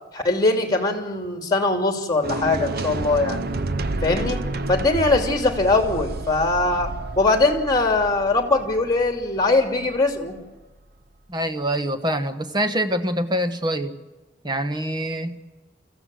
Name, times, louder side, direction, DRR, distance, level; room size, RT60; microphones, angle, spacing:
voice 1, 0.1-3.5 4.0-4.4 4.7-6.9 7.2-10.3, left 2 dB, 20° left, 5 dB, 2.8 m, -21 dB
sound 1, 2.2-10.3, right 2 dB, 55° right, 0.8 m, -30 dB
voice 2, 11.3-13.9 14.4-15.6, right 1 dB, 25° right, 8 dB, 1.4 m, -25 dB
24.5 x 15.5 x 7.8 m, 1.2 s
head